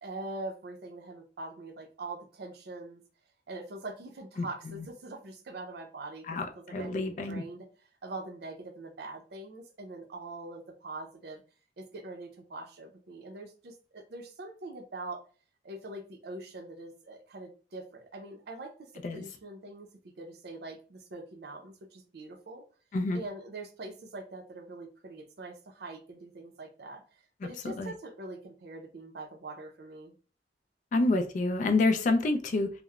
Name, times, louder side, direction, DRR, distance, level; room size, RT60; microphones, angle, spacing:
voice 1, 0.0-3.0 3.5-6.2 6.5-7.7 8.0-11.4 11.8-15.2 15.6-19.9 20.2-22.6 23.1-27.0 27.4-30.1, right 2 dB, 65° right, 3 dB, 0.5 m, -43 dB
voice 2, 4.4-4.8 6.3-7.4 19.0-19.2 22.9-23.2 27.6-27.9 30.9-32.7, left 2 dB, 45° left, 7 dB, 0.3 m, -28 dB
2.9 x 2.0 x 2.3 m, 0.37 s
head